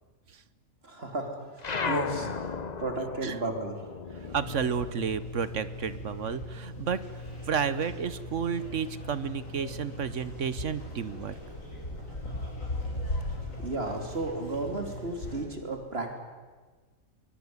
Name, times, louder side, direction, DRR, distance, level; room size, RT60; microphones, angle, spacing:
voice 1, 0.8-4.0 13.0-13.2 13.6-16.2, right 2 dB, 45° right, 4 dB, 3.7 m, -34 dB
sound 1, 1.6-6.5 6.8-8.2, left 5 dB, 35° left, 0.9 m, -37 dB
voice 2, 4.1-11.3, right 7 dB, 60° right, 15 dB, 1.3 m, -32 dB
sound 2, 4.3-15.4, left 1 dB, 70° left, 6.2 m, -38 dB
23.0 x 22.0 x 9.7 m, 1.4 s
omnidirectional pair, 1.4 m